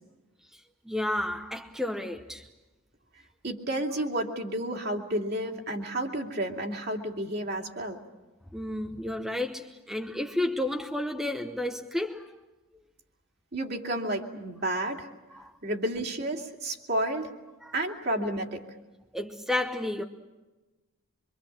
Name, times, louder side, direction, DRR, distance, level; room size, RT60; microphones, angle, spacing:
voice 1, 0.5-2.5 8.5-12.3 15.3-15.5 17.6-17.7 19.1-20.0, left 1 dB, ahead, 0.9 m, -32 dB
voice 2, 3.4-8.0 13.5-15.1 15.6-17.3 17.7-18.6, right 1 dB, 50° right, 2.7 m, -31 dB
25.0 x 25.0 x 7.4 m
head